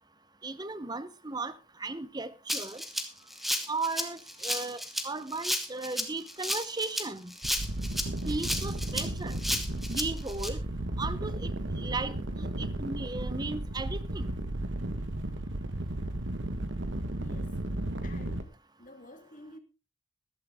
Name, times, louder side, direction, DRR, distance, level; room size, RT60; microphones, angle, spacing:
voice 1, 0.4-1.5 1.8-2.8 3.7-7.3 8.2-9.4 9.9-10.6 11.0-11.5 11.8-14.3, right 3 dB, 20° right, 0.8 m, -36 dB
Rattle (instrument), 2.5-10.5, equal, ahead, 1.4 m, -33 dB
sound 1, 7.4-18.4, right 1 dB, 70° right, 1.4 m, -34 dB
voice 2, 17.2-17.5 18.0-18.5 18.8-19.6, left 1 dB, 45° left, 2.8 m, -50 dB
14.5 x 12.5 x 3.6 m
head